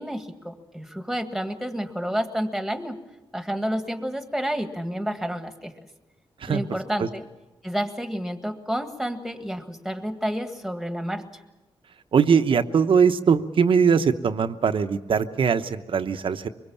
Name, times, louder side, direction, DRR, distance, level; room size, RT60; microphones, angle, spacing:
voice 1, 0.0-3.0 3.3-5.7 6.5-7.3 7.6-11.3, equal, ahead, 7 dB, 1.8 m, -30 dB
voice 2, 12.1-16.5, right 6 dB, 60° right, 9 dB, 1.0 m, -21 dB
24.0 x 21.5 x 7.1 m, 1.0 s
cardioid pair, 100°, 10 cm